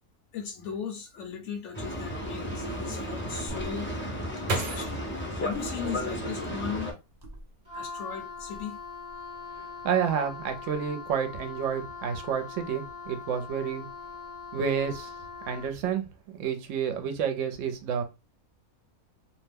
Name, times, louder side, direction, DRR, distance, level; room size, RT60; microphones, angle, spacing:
voice 1, 0.3-4.2 4.5-6.9 7.7-8.8, left 7 dB, 60° left, 0.9 m, -37 dB
Boat Water vehicle, 1.7-6.9, equal, 15° left, 0.3 m, -34 dB
sound 1, 3.5-6.6 7.1-7.8 8.2-8.6, right 2 dB, 85° right, 0.3 m, -36 dB
Wind instrument woodwind instrument, 7.6-15.8, left 5 dB, 30° right, 0.6 m, -42 dB
voice 2, 9.8-13.8 14.5-15.1 15.5-18.0, right 7 dB, 65° right, 0.9 m, -30 dB
2.7 x 2.1 x 3.3 m
omnidirectional pair, 1.6 m